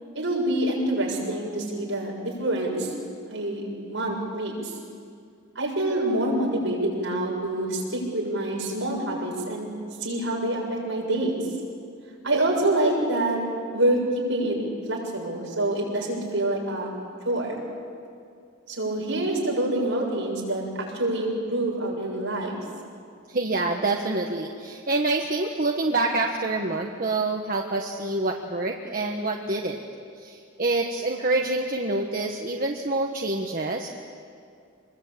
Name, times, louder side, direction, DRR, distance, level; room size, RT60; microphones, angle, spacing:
voice 1, 0.1-2.9 3.3-4.8 5.6-9.7 10.0-11.4 12.2-13.4 13.7-14.6 14.9-16.9 17.3-17.6 18.7-22.6, right 1 dB, 70° right, -2 dB, 7.1 m, -26 dB
voice 2, 23.3-29.8 30.2-33.9, right 2 dB, 45° right, 1 dB, 1.3 m, -26 dB
26.0 x 22.0 x 8.6 m, 2.3 s
head